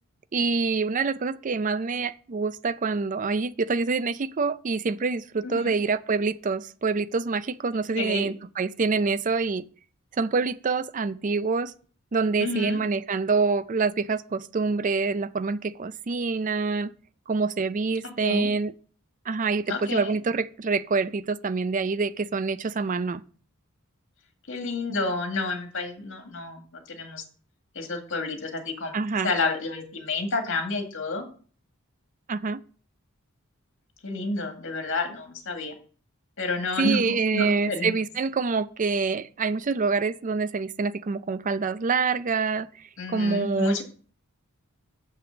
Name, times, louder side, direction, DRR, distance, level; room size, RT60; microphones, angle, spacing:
voice 1, 0.3-9.6 10.2-11.7 12.1-16.9 17.3-18.7 19.3-23.2 28.9-29.3 32.3-32.6 36.8-42.7 43.1-43.8, right 4 dB, 35° right, 0.4 m, -26 dB
voice 2, 5.4-5.7 8.0-8.3 12.4-12.8 18.0-18.5 19.7-20.1 24.5-26.6 26.9-27.2 27.8-31.3 34.0-35.7 36.4-37.9 43.0-43.8, left 3 dB, 60° left, 2.0 m, -30 dB
6.8 x 6.0 x 7.0 m
head